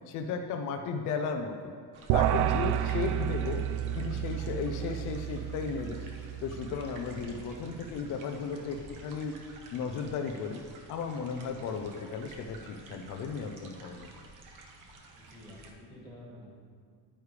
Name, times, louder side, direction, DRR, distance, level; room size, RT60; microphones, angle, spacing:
voice 1, 0.1-1.7 2.1-3.7 4.0-6.0 6.4-9.4 9.7-10.6 10.9-14.1, left 5 dB, 50° left, 4 dB, 0.6 m, -35 dB
sound 1, 1.9-15.7, right 2 dB, 50° right, 1.2 m, -51 dB
sound 2, 2.1-7.6, right 11 dB, 90° right, 0.5 m, -31 dB
voice 2, 15.2-16.5, left 1 dB, 10° left, -5 dB, 2.0 m, -50 dB
10.0 x 9.6 x 3.3 m, 2.1 s
cardioid pair, 155°, 39 cm